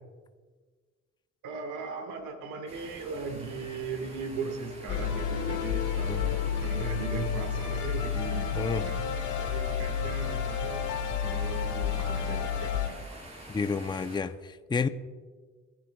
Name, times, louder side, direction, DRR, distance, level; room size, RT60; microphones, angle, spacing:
voice 1, 1.4-10.9 11.2-13.2, right 5 dB, 85° right, 6 dB, 1.7 m, -38 dB
sound 1, 2.7-14.2, right 1 dB, 20° right, 4.3 m, -46 dB
sound 2, 4.9-12.9, left 7 dB, 85° left, 1.3 m, -30 dB
voice 2, 13.5-14.9, left 5 dB, 15° left, 11 dB, 0.5 m, -30 dB
23.5 x 10.0 x 2.2 m, 1.5 s
cardioid pair, 90°, 30 cm